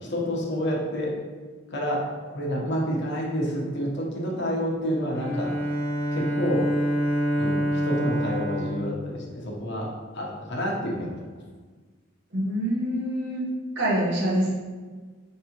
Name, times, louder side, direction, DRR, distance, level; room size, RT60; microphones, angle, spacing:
voice 1, 0.1-1.1 1.7-5.5 6.1-6.7 7.4-11.2, equal, 60° left, -2 dB, 0.9 m, -29 dB
Bowed string instrument, 5.1-9.9, equal, 15° left, 1.1 m, -27 dB
voice 2, 12.3-13.5 13.8-14.5, equal, 60° right, -4 dB, 1.1 m, -25 dB
4.8 x 3.4 x 2.9 m, 1.4 s
head